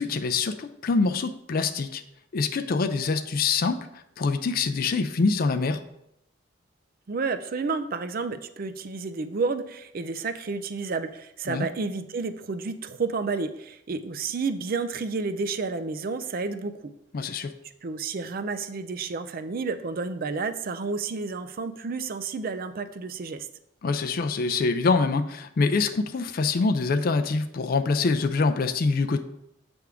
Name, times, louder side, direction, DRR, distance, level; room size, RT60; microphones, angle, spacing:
voice 1, 0.0-2.0 2.3-3.9 4.2-5.8 11.5-11.7 17.1-17.5 23.8-29.2, left 4 dB, 50° left, 8 dB, 0.4 m, -25 dB
voice 2, 7.1-16.8 17.8-23.5, right 4 dB, 50° right, 10 dB, 0.5 m, -31 dB
8.0 x 3.5 x 4.8 m, 0.79 s
head